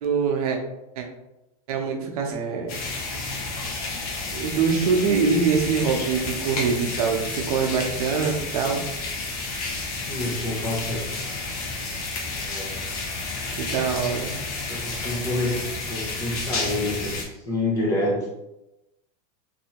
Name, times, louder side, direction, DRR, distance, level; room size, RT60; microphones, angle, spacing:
voice 1, 0.0-0.6 1.0-1.1 1.7-2.7 4.3-8.9 13.6-14.3, right 5 dB, 70° right, 2 dB, 0.7 m, -24 dB
sound 1, 2.7-17.2, left 3 dB, 70° left, 1.0 m, -31 dB
voice 2, 10.1-11.2 12.3-12.8 14.7-18.3, left 1 dB, 15° left, -2 dB, 0.4 m, -28 dB
3.4 x 2.7 x 2.9 m, 0.93 s
supercardioid pair, 170°, 20 cm